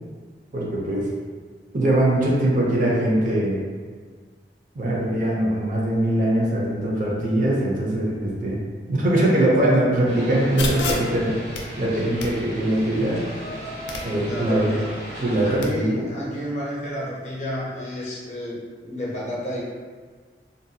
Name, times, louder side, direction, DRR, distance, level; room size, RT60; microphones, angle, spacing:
voice 1, 0.5-1.1 1.7-3.6 4.7-8.6 8.9-11.4 11.8-13.2 14.0-14.7 15.2-16.1, right 1 dB, 45° right, -4 dB, 0.5 m, -22 dB
sound 1, 10.0-15.6, right 1 dB, 90° right, 0.9 m, -37 dB
sound 2, 10.6-15.6, left 2 dB, 85° left, 0.4 m, -34 dB
voice 2, 14.2-14.9 15.4-19.6, left 1 dB, 40° left, -5 dB, 0.6 m, -31 dB
2.6 x 2.2 x 2.6 m, 1.5 s
head